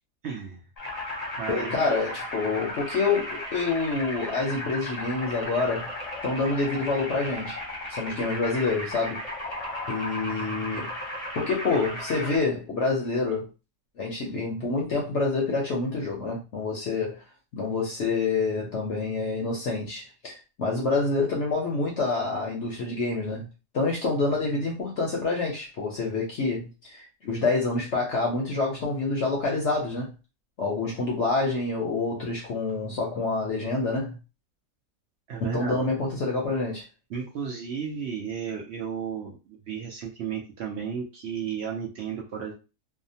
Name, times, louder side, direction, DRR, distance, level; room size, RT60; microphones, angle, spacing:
voice 1, 0.2-0.6 1.4-1.9 35.3-35.9 37.1-42.5, right 7 dB, 80° right, 0.6 m, -34 dB
sound 1, 0.8-12.4, left 1 dB, 35° left, 0.6 m, -35 dB
voice 2, 1.5-5.9 6.2-7.6 7.9-9.2 9.9-10.9 11.3-13.5 14.0-17.2 17.5-23.5 23.7-30.1 30.6-34.2 35.4-36.8, left 3 dB, 65° left, 0.8 m, -27 dB
2.7 x 2.1 x 2.6 m
omnidirectional pair, 1.7 m